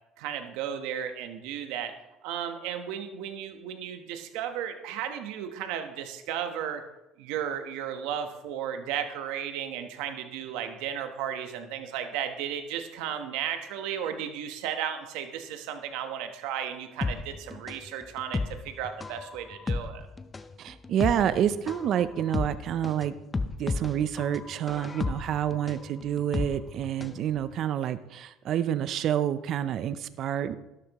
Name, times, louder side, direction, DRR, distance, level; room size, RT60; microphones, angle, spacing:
voice 1, 0.2-1.9 2.2-6.8 7.2-20.1, right 9 dB, 85° right, 7 dB, 1.2 m, -34 dB
sound 1, 17.0-27.2 27.5-27.6, left 3 dB, 20° left, 0.6 m, -33 dB
voice 2, 20.6-23.1 23.6-30.6, right 10 dB, 55° right, 13 dB, 0.6 m, -28 dB
12.5 x 12.0 x 3.1 m, 0.96 s
cardioid pair, 115°, 0 cm